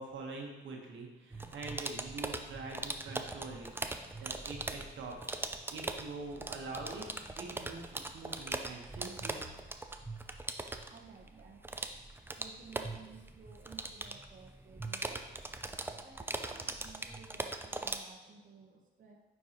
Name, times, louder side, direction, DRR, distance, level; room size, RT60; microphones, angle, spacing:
voice 1, 0.0-3.7 4.2-5.3 5.7-7.1 7.4-9.5, right 3 dB, 70° right, 0 dB, 1.3 m, -44 dB
sound 1, 1.3-18.0, right 2 dB, 10° right, 0.4 m, -41 dB
voice 2, 10.9-11.9 12.3-15.3 16.0-19.2, right 5 dB, 40° right, -1 dB, 1.1 m, -55 dB
9.3 x 4.6 x 3.0 m, 1.1 s
cardioid pair, 90°, 20 cm